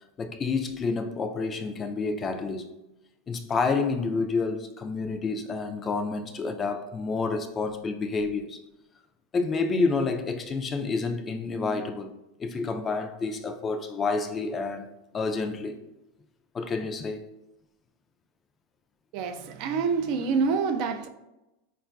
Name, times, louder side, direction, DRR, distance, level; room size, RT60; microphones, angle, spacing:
voice 1, 0.2-2.7 3.3-8.6 9.3-12.1 12.4-14.9 15.1-15.8 16.5-17.2, left 4 dB, 25° left, 0.3 m, -29 dB
voice 2, 19.1-21.1, right 5 dB, 55° right, 0.3 m, -27 dB
3.7 x 2.3 x 2.4 m
hypercardioid pair, 100°, 0 cm